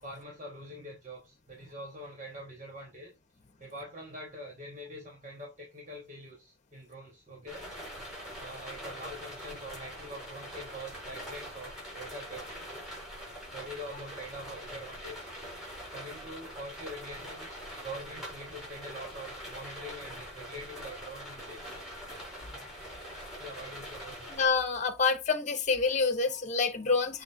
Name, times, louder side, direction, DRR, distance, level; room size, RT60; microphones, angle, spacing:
voice 1, 0.0-3.1 3.6-8.1 8.4-12.5 13.5-15.3 15.9-21.8 23.4-24.3, equal, 35° right, 3.1 m, -44 dB
sound 1, 7.5-24.5, equal, 5° right, 4.4 m, -43 dB
voice 2, 24.3-27.2, left 4 dB, 40° left, 1.2 m, -27 dB
7.6 x 3.6 x 3.9 m
head